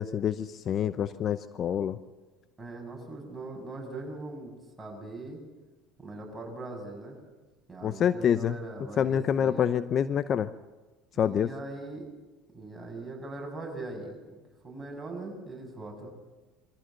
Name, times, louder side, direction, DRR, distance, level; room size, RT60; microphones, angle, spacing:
voice 1, 0.0-2.0 7.8-8.6 9.0-10.5 11.2-11.5, left 8 dB, 45° left, 14 dB, 0.7 m, -27 dB
voice 2, 2.6-5.4 6.0-7.2 7.7-9.7 11.1-12.1 12.5-14.4 14.6-16.1, right 2 dB, 15° right, 0 dB, 7.2 m, -41 dB
23.5 x 15.0 x 7.8 m, 1.2 s
hypercardioid pair, 75°, 0 cm